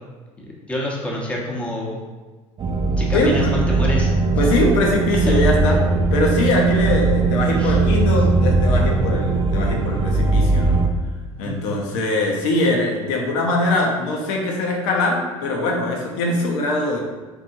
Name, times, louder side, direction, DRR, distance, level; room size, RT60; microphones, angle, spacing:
voice 1, 0.7-2.0 3.0-4.1 5.3-5.4 7.6-7.8 11.3-11.6, left 1 dB, 10° left, -4 dB, 1.0 m, -27 dB
sound 1, 2.6-10.9, right 3 dB, 30° right, 0.5 m, -19 dB
voice 2, 3.1-3.5 4.4-10.8 11.4-17.0, left 2 dB, 65° left, 0 dB, 0.8 m, -22 dB
4.6 x 2.6 x 2.6 m, 1.3 s
hypercardioid pair, 65°, 17 cm